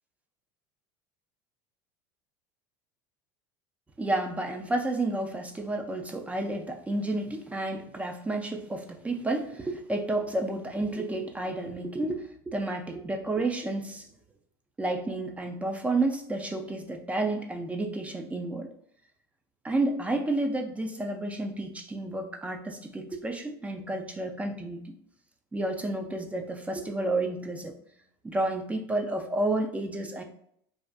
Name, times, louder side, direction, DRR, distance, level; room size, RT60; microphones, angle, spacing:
voice 1, 4.0-14.0 14.8-18.7 19.6-24.9 25.5-27.8 28.2-30.2, right 2 dB, 10° right, 3 dB, 0.3 m, -31 dB
2.5 x 2.4 x 2.2 m, 0.69 s
supercardioid pair, 110°, 11 cm